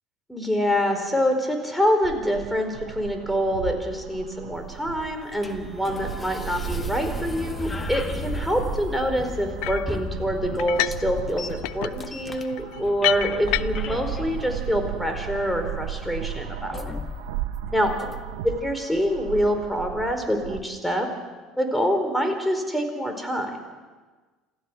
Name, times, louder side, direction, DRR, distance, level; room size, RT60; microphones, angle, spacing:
voice 1, 0.3-17.0 17.7-17.9 18.4-21.1 21.6-23.6, equal, 5° left, 5 dB, 4.5 m, -26 dB
sound 1, 2.0-20.6, right 12 dB, 75° right, 0.9 m, -36 dB
sound 2, 4.5-18.5, left 3 dB, 20° left, 1.7 m, -37 dB
sound 3, 9.6-9.9 10.6-11.1 11.4-14.0, left 19 dB, 70° left, 0.5 m, -28 dB
27.5 x 15.5 x 6.3 m, 1.3 s
hypercardioid pair, 65°, 0 cm